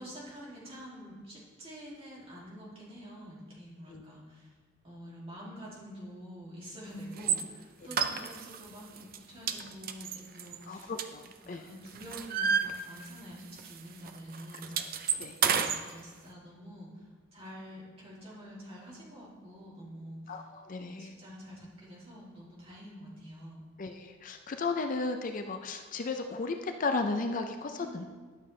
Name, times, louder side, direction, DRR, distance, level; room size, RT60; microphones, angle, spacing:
voice 1, 0.0-4.5 4.8-14.7 15.4-20.4 20.7-23.6 27.8-28.1, equal, 30° right, -6 dB, 2.6 m, -47 dB
sound 1, 7.2-7.4 7.9-8.6 9.0-9.2 9.5-11.5 11.9-13.3 13.6-13.8 14.1-15.8, right 7 dB, 45° right, 0.5 m, -30 dB
voice 2, 10.7-11.6 15.2-15.4 20.3-21.1 23.8-28.0, left 3 dB, 40° left, 6 dB, 0.5 m, -34 dB
11.5 x 6.9 x 3.2 m, 1.4 s
head